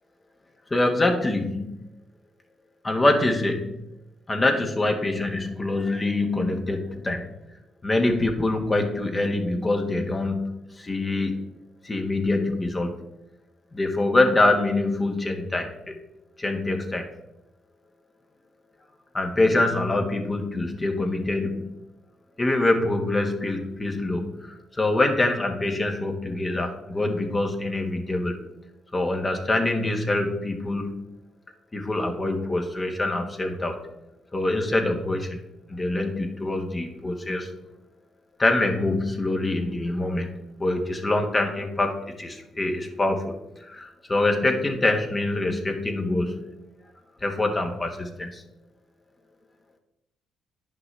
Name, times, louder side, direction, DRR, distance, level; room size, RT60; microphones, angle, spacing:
voice 1, 0.7-1.7 2.8-3.7 4.3-7.2 7.8-11.4 11.8-13.0 13.7-15.7 16.4-17.0 19.1-21.8 22.4-28.4 28.9-31.0 31.7-33.8 34.3-35.3 35.7-37.5 38.4-41.9 42.2-43.3 43.6-46.4 47.2-48.4, left 2 dB, 30° left, 3 dB, 1.5 m, -25 dB
9.4 x 5.9 x 3.4 m, 0.88 s
supercardioid pair, 55°, 0 cm